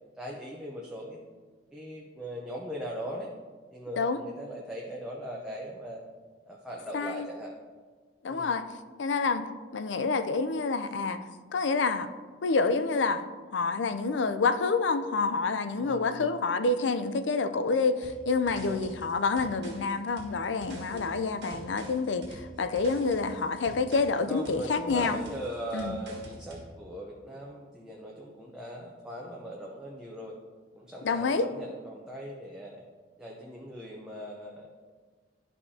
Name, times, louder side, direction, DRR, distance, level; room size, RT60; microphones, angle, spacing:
voice 1, 0.2-1.2 1.7-3.3 3.7-6.0 6.5-7.5 8.3-8.5 15.8-16.3 18.5-18.8 20.9-21.2 24.3-30.3 30.7-32.8 33.2-34.9, equal, 5° right, -3 dB, 0.7 m, -40 dB
voice 2, 6.9-7.3 8.2-8.7 9.0-9.5 9.7-11.2 11.5-12.1 12.4-13.2 13.5-25.2 25.7-25.9 31.0-31.5, left 4 dB, 80° left, 11 dB, 0.5 m, -28 dB
sound 1, 18.0-26.7, right 1 dB, 70° right, 1.7 m, -46 dB
11.5 x 5.5 x 2.8 m, 1.4 s
head